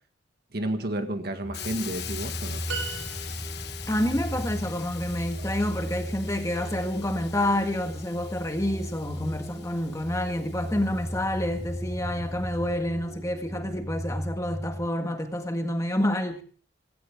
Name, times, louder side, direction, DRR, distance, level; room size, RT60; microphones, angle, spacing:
voice 1, 0.5-2.6, right 1 dB, 55° right, 1.8 m, -31 dB
sound 1, 1.4-14.9, equal, ahead, 0.8 m, -36 dB
Hiss, 1.5-11.4, left 11 dB, 55° left, 1.2 m, -43 dB
sound 2, 2.7-3.8, right 4 dB, 80° right, 5.3 m, -36 dB
voice 2, 3.9-16.4, left 1 dB, 15° left, 1.7 m, -28 dB
17.0 x 16.5 x 3.6 m
head